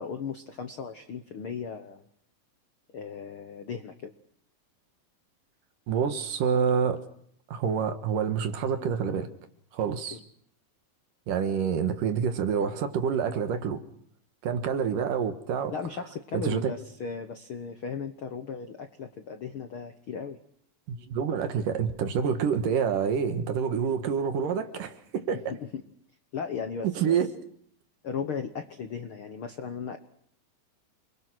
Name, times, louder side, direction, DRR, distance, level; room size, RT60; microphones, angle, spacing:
voice 1, 0.0-2.0 2.9-4.1 10.1-10.2 15.7-20.4 25.5-25.8 26.3-27.2 28.0-30.0, left 6 dB, 65° left, 7 dB, 1.3 m, -36 dB
voice 2, 5.9-7.0 7.5-9.3 9.7-10.2 11.3-13.8 14.4-15.7 16.3-16.7 20.9-25.4 26.8-27.3, right 7 dB, 65° right, 8 dB, 3.0 m, -27 dB
28.5 x 22.0 x 6.3 m, 0.66 s
omnidirectional pair, 4.2 m